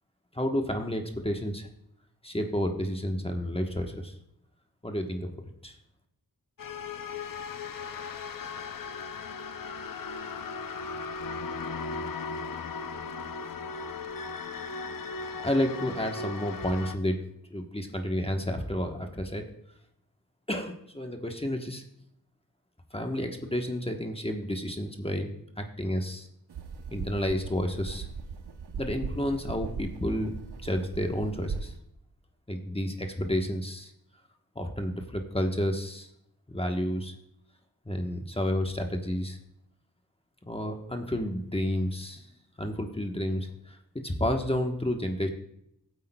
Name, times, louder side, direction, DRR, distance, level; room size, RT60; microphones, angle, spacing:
voice 1, 0.3-1.7 2.2-4.1 4.8-5.3 5.6-5.8 15.4-17.2 17.5-19.5 20.5-21.8 22.9-26.3 26.9-28.1 28.8-30.3 30.6-31.7 32.5-33.9 34.5-36.1 36.5-37.1 37.8-39.4 40.4-42.2 42.6-43.8 44.0-45.3, left 1 dB, 15° left, 4 dB, 1.1 m, -30 dB
sound 1, 6.6-17.0, left 4 dB, 55° left, 0.7 m, -37 dB
sound 2, 26.5-31.7, right 5 dB, 80° right, 0.8 m, -39 dB
14.5 x 8.3 x 2.3 m, 0.76 s
cardioid pair, 45°, 40 cm